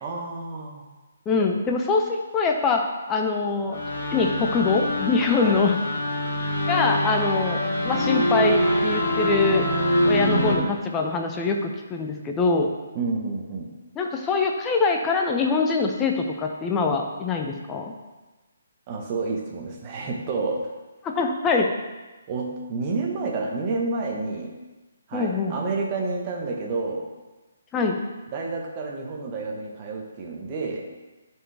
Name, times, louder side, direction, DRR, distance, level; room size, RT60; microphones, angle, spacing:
voice 1, 0.0-0.8 5.4-5.7 12.9-13.7 18.9-20.7 22.3-24.6 25.1-27.1 28.3-30.9, right 3 dB, 30° right, 1 dB, 1.2 m, -29 dB
voice 2, 1.3-2.0 2.3-3.8 4.1-5.8 6.7-9.7 10.0-12.7 13.9-17.9 21.0-21.7 25.1-25.5 27.7-28.0, left 4 dB, 15° left, 2 dB, 0.8 m, -24 dB
sound 1, 3.7-10.6, equal, 50° left, 1.9 m, -24 dB
11.0 x 4.7 x 3.5 m, 1.2 s
figure-of-eight pair, 135°, 0 cm